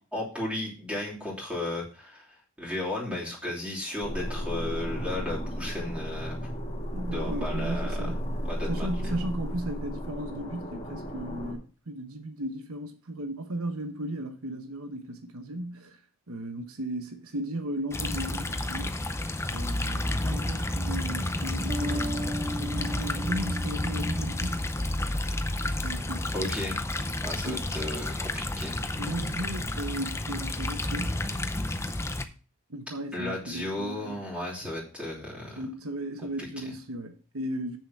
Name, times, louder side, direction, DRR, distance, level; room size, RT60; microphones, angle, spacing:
voice 1, 0.1-6.4 7.1-8.1 8.4-9.1 26.3-28.8 33.1-35.6 36.4-36.7, left 1 dB, 5° right, 3.0 m, -35 dB
sound 1, 4.0-11.5, equal, 30° left, 2.5 m, -34 dB
voice 2, 6.9-8.2 8.7-16.0 16.3-19.0 19.5-24.7 25.6-26.5 27.4-27.6 29.0-31.2 32.7-34.2 35.6-37.8, right 1 dB, 75° right, 1.1 m, -36 dB
sound 2, 17.9-32.2, left 1 dB, 10° left, 0.6 m, -31 dB
sound 3, 21.7-25.0, left 1 dB, 25° right, 1.5 m, -37 dB
7.5 x 6.8 x 5.8 m
head